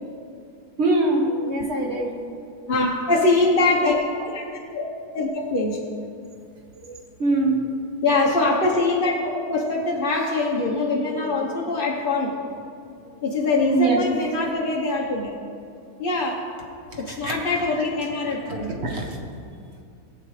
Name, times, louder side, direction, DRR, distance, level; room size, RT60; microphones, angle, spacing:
voice 1, 0.8-2.1 7.2-7.6 13.7-14.0 17.1-17.3 18.5-19.1, right 2 dB, 45° right, 0 dB, 1.5 m, -23 dB
voice 2, 2.7-4.4 4.7-4.8 5.1-5.8 6.8-6.9 8.0-12.3 13.2-15.3 16.0-16.4 17.0-18.7, left 2 dB, 40° left, -3 dB, 0.9 m, -23 dB
17.5 x 8.3 x 3.2 m, 2.4 s
omnidirectional pair, 1.7 m